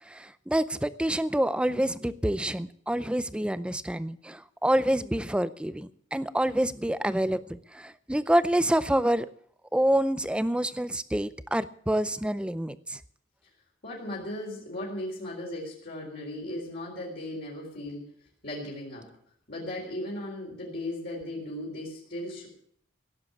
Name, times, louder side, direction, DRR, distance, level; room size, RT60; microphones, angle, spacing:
voice 1, 0.1-9.3 9.7-13.0, right 1 dB, 5° right, 14 dB, 0.5 m, -27 dB
voice 2, 13.8-18.1 18.4-19.1 19.5-22.5, left 1 dB, 50° left, -5 dB, 4.1 m, -37 dB
17.0 x 7.5 x 8.6 m, 0.66 s
head